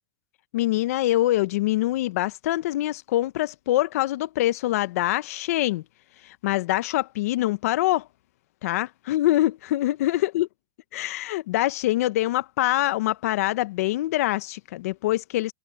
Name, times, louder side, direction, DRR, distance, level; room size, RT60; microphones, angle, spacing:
voice 1, 0.5-5.8 6.2-8.1 8.6-10.5 10.9-15.5, left 15 dB, 65° left, 1.2 m, -24 dB
hypercardioid pair, 130°, 9 cm